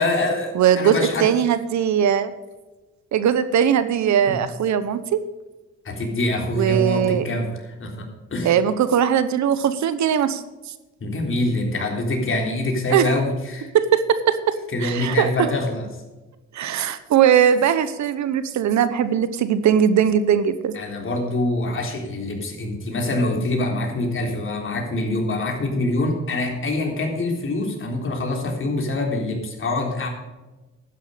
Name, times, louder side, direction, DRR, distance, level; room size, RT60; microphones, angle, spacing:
voice 1, 0.0-1.3 4.3-4.4 5.8-8.5 11.0-13.7 14.7-15.9 20.7-30.1, left 2 dB, 40° left, 1 dB, 3.7 m, -25 dB
voice 2, 0.5-2.3 3.1-5.2 6.5-7.3 8.4-10.4 12.9-13.1 13.7-14.6 14.8-15.3 16.5-20.7, right 8 dB, 70° right, 13 dB, 1.0 m, -19 dB
12.0 x 10.0 x 5.1 m, 1.1 s
cardioid pair, 90°, 30 cm